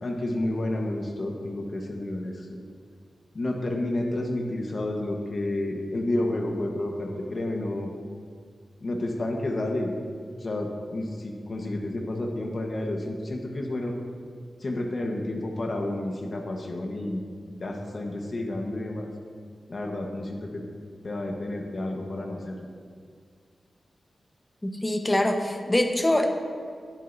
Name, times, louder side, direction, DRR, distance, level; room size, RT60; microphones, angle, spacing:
voice 1, 0.0-2.5 3.3-7.9 8.8-9.9 10.4-14.0 14.6-17.2 17.6-19.1 19.7-20.6 21.0-22.7, left 1 dB, 50° left, 1 dB, 1.2 m, -30 dB
voice 2, 24.8-26.3, left 1 dB, 15° left, 4 dB, 1.1 m, -23 dB
19.0 x 7.4 x 2.7 m, 2.1 s
wide cardioid pair, 90°, 0 cm